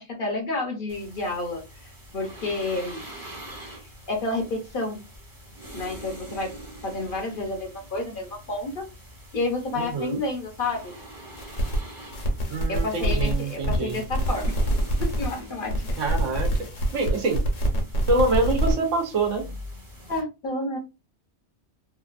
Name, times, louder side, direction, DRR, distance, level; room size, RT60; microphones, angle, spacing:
voice 1, 0.0-3.0 3.8-5.0 5.7-6.5 6.8-8.9 9.3-10.9 12.7-14.6 15.0-16.0 20.1-20.8, left 2 dB, 50° left, 2 dB, 0.7 m, -30 dB
sound 1, 0.9-20.2, equal, 20° right, 0.7 m, -44 dB
voice 2, 9.7-10.2 12.5-14.0 16.0-17.4 18.1-19.4, right 2 dB, 75° right, 4 dB, 1.1 m, -26 dB
sound 2, 11.4-11.8 12.1-15.4 15.7-18.7, equal, 75° left, 1.2 m, -26 dB
3.0 x 2.5 x 2.4 m, 0.28 s
omnidirectional pair, 1.3 m